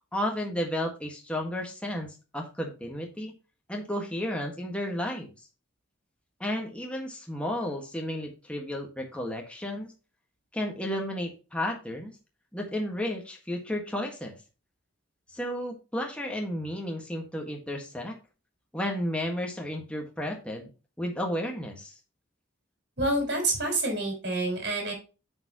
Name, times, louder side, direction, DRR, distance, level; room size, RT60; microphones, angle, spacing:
voice 1, 0.1-3.3 3.7-5.3 6.4-9.9 10.5-12.2 12.5-14.4 15.3-18.2 18.7-20.7 21.0-21.9, left 1 dB, 5° left, 1 dB, 1.6 m, -32 dB
voice 2, 23.0-24.9, right 2 dB, 60° right, 1 dB, 5.5 m, -28 dB
9.3 x 7.0 x 3.0 m, 0.32 s
head